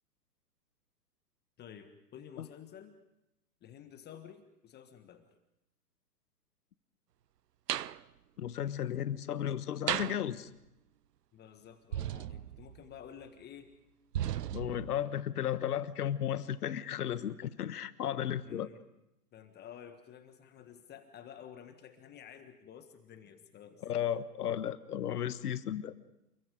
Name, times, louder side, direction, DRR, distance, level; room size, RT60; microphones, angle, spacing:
voice 1, 1.6-3.0 3.6-5.3 11.3-13.7 18.4-18.8 19.3-23.8, left 9 dB, 20° left, 8 dB, 1.6 m, -51 dB
sound 1, 7.7-8.0 9.9-10.2 11.9-12.9 14.1-15.0, right 11 dB, 75° right, 0.8 m, -35 dB
voice 2, 8.4-10.5 14.5-18.7 23.8-25.9, left 10 dB, 65° left, 14 dB, 1.4 m, -34 dB
29.0 x 22.0 x 5.2 m, 0.88 s
hypercardioid pair, 120°, 48 cm